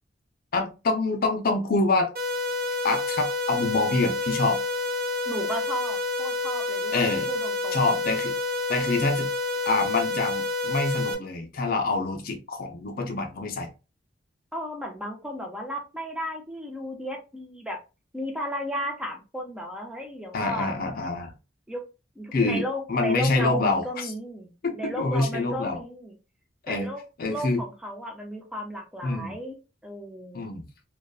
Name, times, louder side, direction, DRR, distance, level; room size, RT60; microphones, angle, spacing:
voice 1, 0.5-2.1 2.8-4.6 6.9-7.3 7.7-8.3 8.7-9.3 9.7-13.7 20.3-21.3 22.3-22.6 22.9-24.1 24.6-25.8 26.7-26.9 27.2-27.6 29.0-29.4 30.3-30.6, left 3 dB, 50° left, 0.5 m, -26 dB
sound 1, 2.2-11.2, left 3 dB, 50° right, 0.6 m, -29 dB
voice 2, 5.3-8.0 14.5-17.8 18.1-20.9 21.7-21.8 22.2-26.1 26.7-27.0 27.3-29.6 29.8-30.5, equal, 5° right, 0.6 m, -34 dB
2.4 x 2.2 x 2.3 m
head